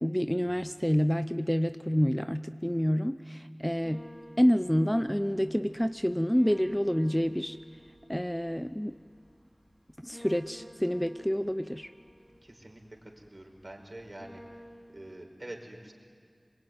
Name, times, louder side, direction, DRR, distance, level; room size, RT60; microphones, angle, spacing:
voice 1, 0.0-4.1 4.4-7.6 8.1-9.0 10.0-11.9, equal, 10° left, 10 dB, 0.6 m, -28 dB
sound 1, 3.8-15.2, equal, 45° left, 7.4 m, -53 dB
voice 2, 12.4-14.4 14.9-15.9, right 1 dB, 50° right, 2 dB, 4.5 m, -46 dB
26.0 x 22.0 x 9.4 m, 2.1 s
wide cardioid pair, 45°, 0 cm